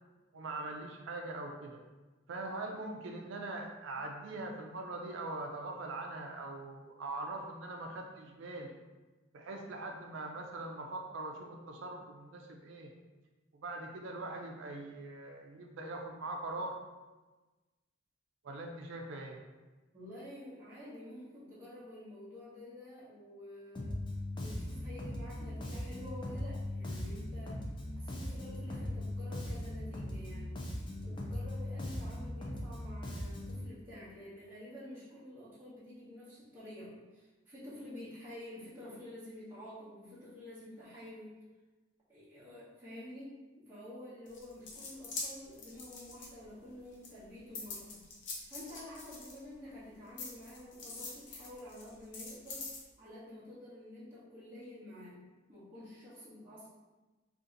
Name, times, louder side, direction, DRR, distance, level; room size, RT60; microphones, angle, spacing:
voice 1, 0.3-1.8 2.3-8.7 9.3-12.9 13.5-16.8 18.4-19.4, right 2 dB, 75° right, 2 dB, 0.4 m, -42 dB
voice 2, 19.9-24.0 24.4-27.7 28.0-30.6 31.0-41.4 42.1-48.0 48.5-52.7 53.0-55.2 55.5-56.7, left 1 dB, 10° right, -11 dB, 0.8 m, -49 dB
Bass guitar, 23.8-33.6, left 1 dB, 25° left, 0.4 m, -39 dB
sound 1, 44.3-46.7 47.0-49.7 50.2-52.8, left 3 dB, 65° left, 0.7 m, -44 dB
2.7 x 2.5 x 3.7 m, 1.2 s
head